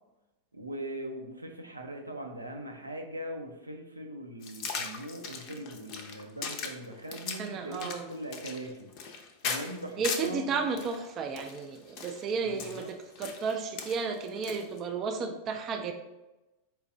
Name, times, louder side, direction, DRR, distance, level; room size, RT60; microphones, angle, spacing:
voice 1, 0.5-8.9 9.4-10.5 12.5-12.9, right 1 dB, 85° right, 2 dB, 0.5 m, -41 dB
sound 1, 4.4-10.4 10.8-14.8, left 5 dB, 40° left, 0.5 m, -38 dB
voice 2, 7.4-8.1 10.0-15.9, right 5 dB, 30° right, 5 dB, 0.4 m, -33 dB
4.3 x 2.3 x 3.7 m, 1.0 s
figure-of-eight pair, 90°, 0 cm